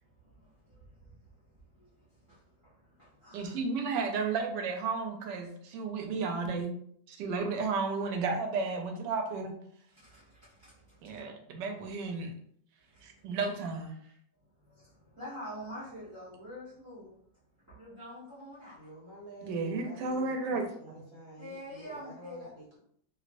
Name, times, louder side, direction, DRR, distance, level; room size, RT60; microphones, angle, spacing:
voice 1, 0.0-3.6 9.9-11.2 12.9-13.2 14.6-17.2 17.6-18.9 21.4-22.5, equal, 15° right, -12 dB, 0.8 m, -47 dB
voice 2, 3.3-6.8 7.1-9.5 11.0-12.3 13.0-14.0 19.4-20.6, right 4 dB, 75° right, 4 dB, 1.2 m, -33 dB
voice 3, 18.7-22.8, right 1 dB, 40° right, -4 dB, 1.1 m, -49 dB
3.0 x 3.0 x 2.5 m, 0.65 s
omnidirectional pair, 2.0 m